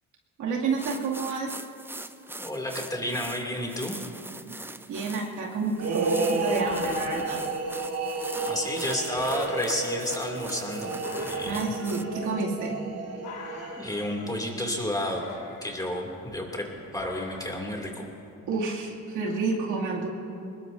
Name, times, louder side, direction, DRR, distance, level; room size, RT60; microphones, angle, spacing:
voice 1, 0.4-1.5 4.4-4.5 4.9-7.5 11.5-12.8 18.5-20.1, right 4 dB, 80° right, -2 dB, 2.6 m, -30 dB
sound 1, 0.7-12.0, right 2 dB, 5° right, 0.5 m, -42 dB
voice 2, 2.4-4.0 8.4-11.6 13.8-15.2 15.6-16.7 16.9-18.1, left 1 dB, 10° left, 0 dB, 2.7 m, -31 dB
sound 2, 5.7-14.3, right 3 dB, 55° right, 1.9 m, -31 dB
sound 3, 5.9-18.3, left 5 dB, 90° left, 1.8 m, -47 dB
22.5 x 20.5 x 2.7 m, 2.6 s
cardioid pair, 90°, 30 cm